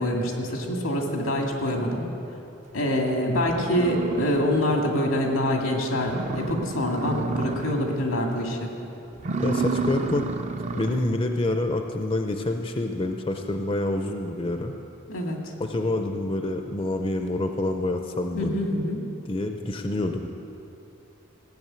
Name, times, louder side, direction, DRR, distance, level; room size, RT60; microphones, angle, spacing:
voice 1, 0.0-2.0 2.7-8.7 15.1-15.5 18.4-19.0, left 1 dB, 90° left, 1 dB, 2.2 m, -25 dB
sound 1, 3.0-3.1 3.5-4.9 5.3-5.4 5.8-5.9 6.1-8.0 8.3-8.6 9.1-11.2, right 3 dB, 35° right, 0.5 m, -30 dB
voice 2, 9.4-10.3 10.7-14.7 15.6-18.5 19.3-20.3, left 2 dB, 25° left, 5 dB, 0.5 m, -27 dB
16.0 x 7.1 x 8.8 m, 2.8 s
head